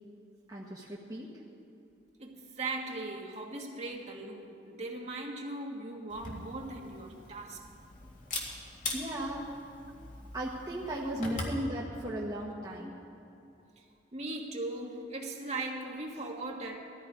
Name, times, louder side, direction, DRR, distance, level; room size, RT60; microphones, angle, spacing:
voice 1, 0.5-1.3 8.5-8.6 8.9-9.8 10.3-13.0, right 1 dB, 20° right, -5 dB, 1.2 m, -36 dB
voice 2, 2.2-7.7 13.8-13.9 14.1-16.8, right 2 dB, 35° right, 0 dB, 1.7 m, -39 dB
Camera, 6.1-11.6, left 2 dB, 45° left, 2.0 m, -42 dB
18.5 x 13.5 x 5.0 m, 2.6 s
head